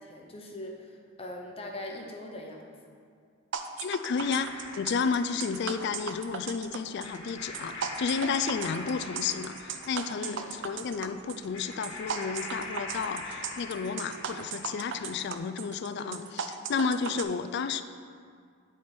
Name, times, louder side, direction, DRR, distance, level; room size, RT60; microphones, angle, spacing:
voice 1, 0.0-2.7 8.7-9.0 10.2-10.6 16.0-16.3 17.0-17.3, left 1 dB, 25° left, 0 dB, 0.8 m, -42 dB
sound 1, 3.5-17.2, right 7 dB, 60° right, 0.4 m, -37 dB
voice 2, 3.8-17.8, left 5 dB, 55° left, 11 dB, 0.3 m, -32 dB
sound 2, 4.2-15.4, left 2 dB, 75° left, 1.3 m, -43 dB
8.3 x 4.6 x 4.4 m, 2.2 s
head